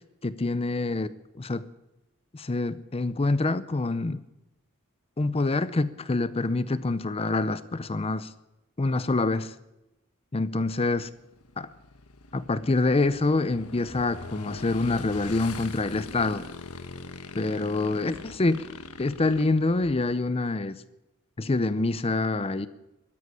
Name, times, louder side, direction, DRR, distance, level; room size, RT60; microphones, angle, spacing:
voice 1, 0.2-1.1 1.4-1.7 2.3-4.2 5.2-8.3 8.8-9.5 10.3-11.1 11.6-11.7 12.3-16.5 17.4-18.7 19.0-20.8 21.4-22.7, left 2 dB, 25° left, 15 dB, 0.6 m, -26 dB
Motorcycle / Engine, 10.5-20.2, left 3 dB, 85° left, 1.3 m, -42 dB
13.0 x 9.9 x 9.8 m, 0.94 s
head